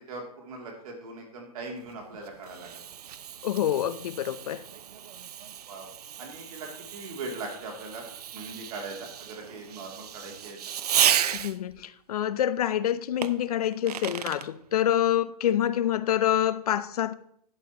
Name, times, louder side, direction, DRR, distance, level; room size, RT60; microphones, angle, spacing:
voice 1, 0.1-2.8 5.6-5.9 6.2-8.1 8.3-10.6, right 3 dB, 65° right, 2.8 m, -40 dB
Fireworks, 1.9-11.8 13.2-14.5, right 10 dB, 80° right, 0.6 m, -33 dB
voice 2, 3.4-4.6 11.3-17.1, left 11 dB, 70° left, 0.7 m, -26 dB
12.0 x 10.5 x 3.0 m
hypercardioid pair, 130°, 20 cm